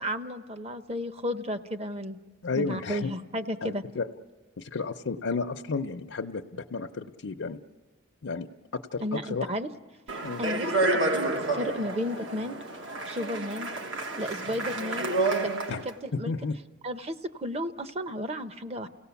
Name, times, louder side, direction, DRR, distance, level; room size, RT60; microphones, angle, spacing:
voice 1, 0.0-2.2 2.5-3.8 9.0-9.7 10.4-12.6 13.1-13.7 14.2-15.1 15.4-15.5 15.8-16.3 16.8-18.9, equal, 30° right, 10 dB, 0.7 m, -33 dB
voice 2, 2.4-3.1 3.6-4.1 4.6-7.6 8.2-8.5 8.7-9.5 10.2-10.4 15.7-15.8 16.1-16.6, left 4 dB, 90° left, 3 dB, 0.7 m, -32 dB
Speech, 10.1-15.9, right 2 dB, 75° right, 1.3 m, -29 dB
30.0 x 17.5 x 7.0 m, 1.4 s
head